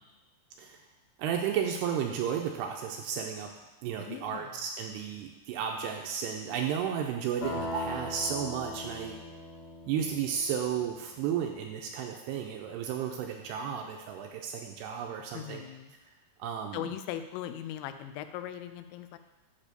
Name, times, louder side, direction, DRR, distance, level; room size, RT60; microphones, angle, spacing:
voice 1, 1.2-3.5 3.8-9.2 9.9-15.6 16.4-16.9, right 8 dB, 85° right, 2 dB, 2.5 m, -33 dB
voice 2, 4.0-4.5 15.3-15.9 16.7-19.2, left 11 dB, 90° left, 10 dB, 2.9 m, -39 dB
sound 1, 7.4-11.2, left 1 dB, 45° left, 1.3 m, -40 dB
9.6 x 3.5 x 6.7 m, 1.2 s
omnidirectional pair, 5.1 m